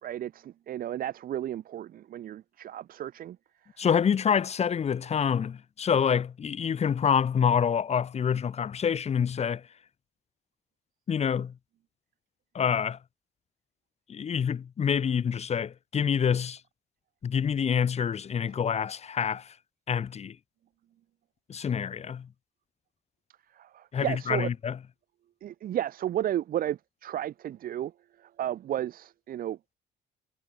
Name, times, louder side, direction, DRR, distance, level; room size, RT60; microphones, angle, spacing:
voice 1, 0.0-3.4 3.8-3.9 23.5-24.5 25.4-27.9 28.2-29.7, right 11 dB, 60° right, 1.6 m, -33 dB
voice 2, 3.8-9.6 11.1-11.5 12.5-13.0 14.1-16.6 17.2-19.5 19.9-20.4 21.5-22.3 23.9-24.8, left 7 dB, 40° left, 2.0 m, -27 dB
cardioid pair, 110°, 17 cm